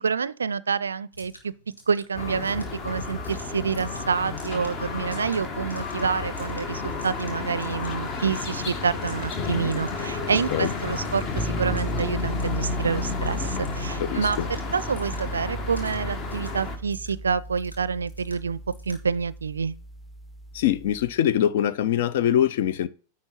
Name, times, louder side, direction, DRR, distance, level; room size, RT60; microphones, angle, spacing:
voice 1, 0.0-1.5 1.9-18.6 18.9-19.8, right 5 dB, 75° right, 0.4 m, -28 dB
sound 1, 1.1-19.1, left 1 dB, 85° left, 1.9 m, -51 dB
sound 2, 2.1-16.8, left 4 dB, 35° left, 1.4 m, -32 dB
sound 3, 11.4-21.2, right 1 dB, 5° right, 0.6 m, -36 dB
voice 2, 14.0-14.5 20.5-22.9, left 10 dB, 55° left, 0.6 m, -23 dB
9.7 x 4.2 x 5.7 m
figure-of-eight pair, 90°, 0 cm